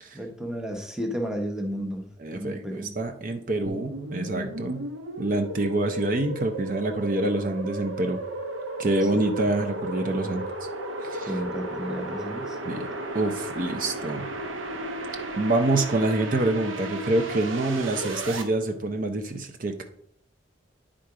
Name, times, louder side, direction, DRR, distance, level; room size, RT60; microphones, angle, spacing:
voice 1, 0.1-2.1 2.3-2.9 11.3-12.6, equal, 5° right, 3 dB, 0.8 m, -32 dB
voice 2, 2.2-4.8 5.2-8.2 8.8-10.4 11.0-11.4 12.6-12.9 13.1-14.3 15.4-19.8, right 2 dB, 45° right, 6 dB, 0.6 m, -26 dB
sound 1, 3.7-18.4, right 1 dB, 90° right, 1.0 m, -34 dB
10.0 x 3.7 x 4.8 m, 0.69 s
head